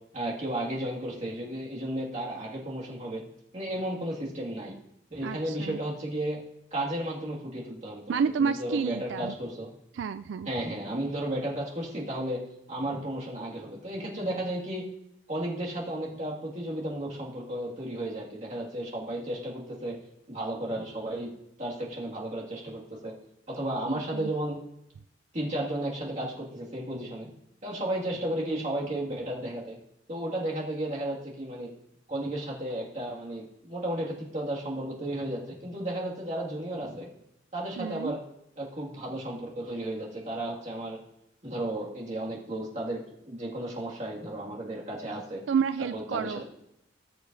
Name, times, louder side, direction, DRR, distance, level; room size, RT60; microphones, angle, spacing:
voice 1, 0.1-3.2 3.5-4.7 5.1-6.4 6.7-9.7 10.5-12.4 12.7-14.8 15.3-20.0 20.3-21.3 21.6-23.1 23.5-24.6 25.3-27.3 27.6-29.8 30.1-31.7 32.1-37.1 37.5-38.2 38.6-41.0 41.4-45.4 45.9-46.4, right 1 dB, 40° right, -4 dB, 2.1 m, -33 dB
voice 2, 5.2-5.8 8.1-9.3 9.9-10.5 23.9-24.3 37.8-38.2 45.5-46.4, right 6 dB, 85° right, 12 dB, 0.3 m, -30 dB
19.0 x 6.7 x 2.7 m, 0.81 s
head